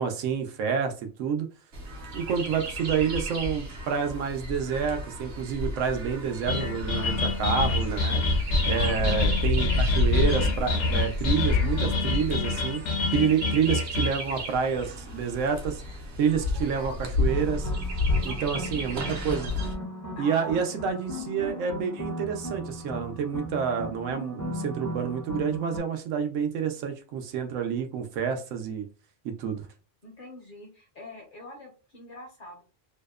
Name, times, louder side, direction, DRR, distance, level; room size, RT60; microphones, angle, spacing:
voice 1, 0.0-1.5 2.1-8.2 8.7-12.8 13.1-15.8 16.2-16.9 17.2-17.7 18.2-19.5 20.2-28.9 29.2-29.7, right 7 dB, 90° right, 5 dB, 0.9 m, -28 dB
Chirp tweet, 1.7-19.7, left 2 dB, 65° right, 0.8 m, -30 dB
sound 1, 6.5-14.1, left 3 dB, 85° left, 1.0 m, -28 dB
voice 2, 8.7-9.1 16.5-17.3 18.2-19.0 20.2-20.8 30.0-32.6, left 1 dB, 55° left, 1 dB, 0.7 m, -45 dB
sound 2, 17.3-25.8, equal, 20° left, 0.5 m, -37 dB
2.7 x 2.0 x 2.3 m, 0.34 s
omnidirectional pair, 1.3 m